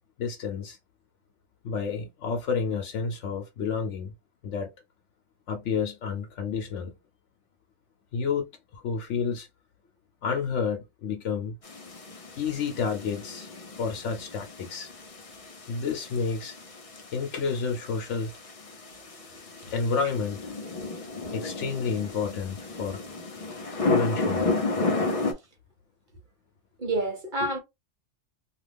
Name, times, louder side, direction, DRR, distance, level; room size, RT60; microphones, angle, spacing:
voice 1, 0.2-0.8 1.6-4.1 4.4-4.7 5.5-6.9 8.1-8.4 8.7-9.5 10.2-11.5 12.3-13.5 13.8-14.9 15.7-16.5 17.1-18.3 19.7-20.5 21.3-23.0 23.8-24.5, left 5 dB, 85° left, 1.0 m, -30 dB
sound 1, 11.6-25.3, left 3 dB, 40° left, 0.6 m, -33 dB
voice 2, 18.8-19.8 26.8-27.6, right 1 dB, 45° right, 1.0 m, -31 dB
2.4 x 2.4 x 3.3 m
omnidirectional pair, 1.2 m